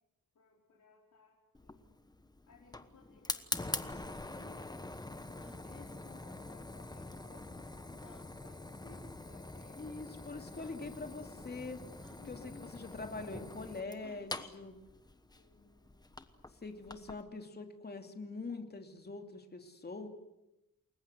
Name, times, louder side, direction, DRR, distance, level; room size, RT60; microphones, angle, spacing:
voice 1, 0.3-1.4 1.6-1.9 2.5-4.9 5.3-9.9 12.2-12.7 15.4-16.1, left 4 dB, 55° left, -3 dB, 4.9 m, -60 dB
Fire, 1.5-17.2, left 2 dB, 10° left, 1.1 m, -45 dB
sound 1, 5.4-5.7 7.0-7.1 8.0-8.3 9.3-9.4 10.1-10.2 10.5-10.8 12.0-12.2 14.0-14.3, equal, 5° right, 2.6 m, -60 dB
voice 2, 9.8-11.8 12.3-14.7 16.5-20.1, left 3 dB, 30° left, 5 dB, 2.7 m, -44 dB
29.0 x 22.0 x 7.9 m, 0.91 s
wide cardioid pair, 175°, 34 cm